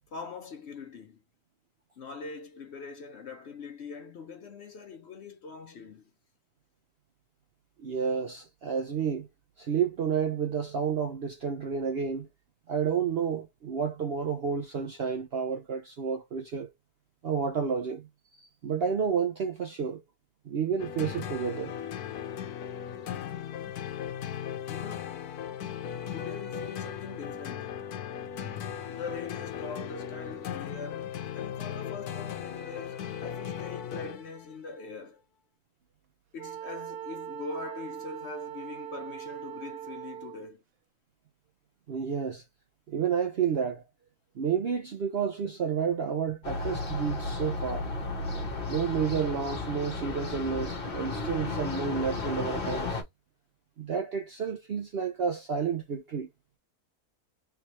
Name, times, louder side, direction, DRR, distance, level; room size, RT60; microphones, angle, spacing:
voice 1, 0.1-1.2 2.0-6.1 24.7-25.3 26.1-27.8 28.9-35.2 36.3-40.6, left 4 dB, 60° left, 0.8 m, -42 dB
voice 2, 7.8-9.3 9.6-12.3 12.7-16.7 17.2-18.1 18.4-20.0 20.5-21.7 28.3-28.5 41.9-42.4 42.9-43.8 44.4-47.9 48.7-53.0 53.8-56.3, right 6 dB, 60° right, 0.6 m, -30 dB
sound 1, 20.8-34.6, left 9 dB, 80° left, 1.2 m, -37 dB
Wind instrument woodwind instrument, 36.4-40.5, right 11 dB, 85° right, 1.2 m, -41 dB
sound 2, 46.4-53.0, left 3 dB, 40° left, 1.2 m, -34 dB
3.4 x 2.9 x 2.9 m
omnidirectional pair, 1.6 m